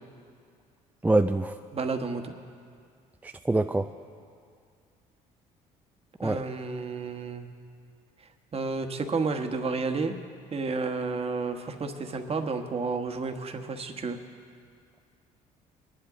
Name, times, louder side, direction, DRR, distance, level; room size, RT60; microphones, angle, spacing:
voice 1, 1.0-1.5 3.2-3.9 6.2-6.4, right 2 dB, 10° right, 6 dB, 0.4 m, -24 dB
voice 2, 1.7-2.3 6.2-7.5 8.5-10.1 10.5-14.2, right 4 dB, 35° right, 5 dB, 1.3 m, -31 dB
22.0 x 11.5 x 3.7 m, 2.2 s
supercardioid pair, 80°, 17 cm